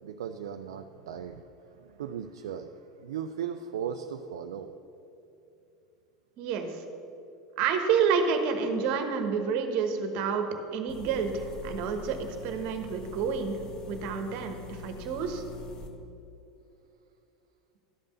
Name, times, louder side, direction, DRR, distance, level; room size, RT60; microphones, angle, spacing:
voice 1, 0.0-1.4 1.7-4.8, right 8 dB, 75° right, 6 dB, 0.4 m, -37 dB
voice 2, 6.4-6.8 7.6-10.5 10.7-13.6 13.9-15.4, right 6 dB, 55° right, 6 dB, 1.2 m, -29 dB
sound 1, 10.9-15.9, left 1 dB, 35° left, 1.2 m, -44 dB
12.0 x 5.4 x 6.6 m, 2.8 s
hypercardioid pair, 80°, 2 cm